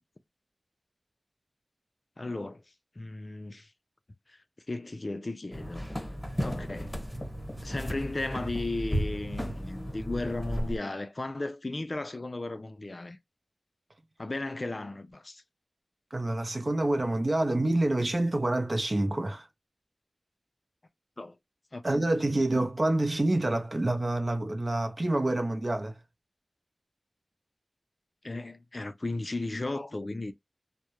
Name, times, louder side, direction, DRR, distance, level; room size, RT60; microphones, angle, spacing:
voice 1, 2.2-2.6 3.0-3.7 4.3-4.4 4.7-5.9 6.4-7.0 7.6-13.2 14.2-15.4 21.2-21.4 21.7-21.8 22.3-22.4 28.2-30.3, left 2 dB, 45° left, 0.3 m, -35 dB
sound 1, 5.5-10.8, equal, 5° left, 1.1 m, -34 dB
voice 2, 16.1-19.5 21.8-26.0, right 2 dB, 45° right, 0.5 m, -27 dB
2.3 x 2.0 x 2.8 m
wide cardioid pair, 70°, 0 cm